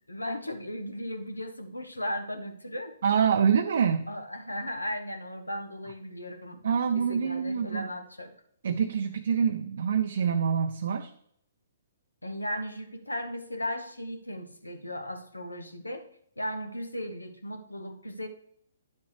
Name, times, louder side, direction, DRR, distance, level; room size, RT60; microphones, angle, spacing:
voice 1, 0.1-3.0 4.1-6.6 6.9-8.3 12.2-16.1 16.4-18.3, left 1 dB, 90° left, 7 dB, 1.1 m, -36 dB
voice 2, 3.0-4.1 6.6-7.8 8.6-11.1, right 7 dB, 60° right, 6 dB, 0.6 m, -26 dB
10.0 x 7.3 x 3.3 m, 0.70 s
figure-of-eight pair, 125°, 0 cm